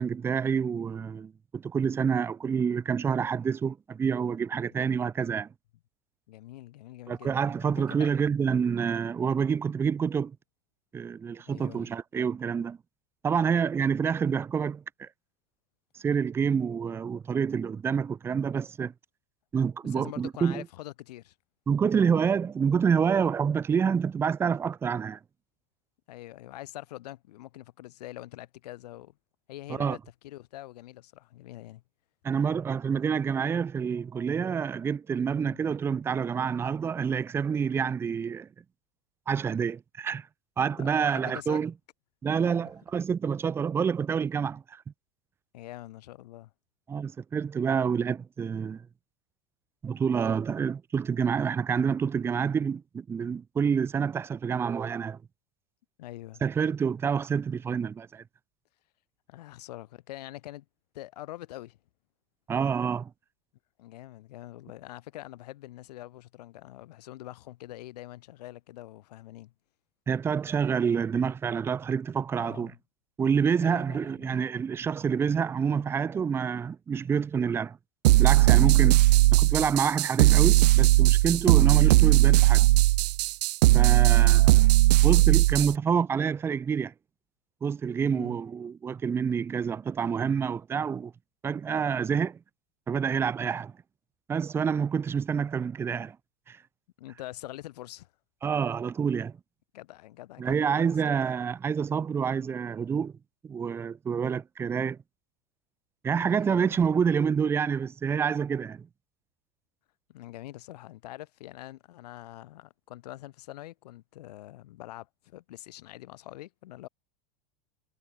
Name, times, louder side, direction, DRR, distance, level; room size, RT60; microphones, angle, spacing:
voice 1, 0.0-5.5 7.1-10.4 10.9-12.8 13.2-15.1 15.9-18.9 19.5-20.6 21.7-25.2 29.8-30.0 32.2-38.5 39.3-40.3 40.6-41.7 42.2-44.8 46.9-48.9 49.8-55.2 56.4-58.2 62.5-63.1 70.1-72.7 73.2-77.8 78.2-79.0 79.3-82.7 83.7-84.7 85.0-86.9 87.6-91.1 91.4-92.4 92.9-93.7 94.3-96.2 96.5-96.6 98.4-99.3 100.4-103.1 103.4-105.0 106.0-108.9, right 6 dB, 10° right, 1.2 m, -27 dB
voice 2, 6.3-8.1 11.4-11.9 19.8-21.3 26.1-29.2 29.5-30.0 30.2-31.8 35.3-35.6 40.8-41.6 42.6-42.7 45.5-46.5 56.0-56.4 59.3-60.7 60.9-61.8 63.8-69.5 72.4-72.8 73.6-74.4 78.7-78.9 81.5-81.7 84.2-84.5 88.1-88.4 97.0-98.1 99.7-101.2 106.2-106.9 110.1-116.9, left 15 dB, 70° left, 7.4 m, -44 dB
sound 1, 78.0-85.7, right 18 dB, 80° right, 0.5 m, -19 dB
supercardioid pair, 180°, 21 cm